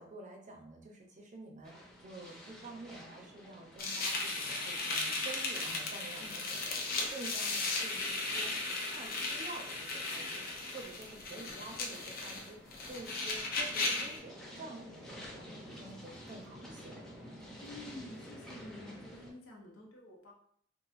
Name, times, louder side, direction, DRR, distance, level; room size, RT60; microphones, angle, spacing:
voice 1, 0.0-17.0, right 2 dB, 40° right, 1 dB, 0.6 m, -49 dB
sound 1, 1.6-19.3, equal, 5° left, 0.7 m, -52 dB
sound 2, 3.8-14.2, left 3 dB, 45° left, 0.6 m, -36 dB
voice 2, 17.6-20.3, left 1 dB, 80° left, -1 dB, 0.9 m, -50 dB
3.8 x 2.5 x 2.5 m, 0.63 s
head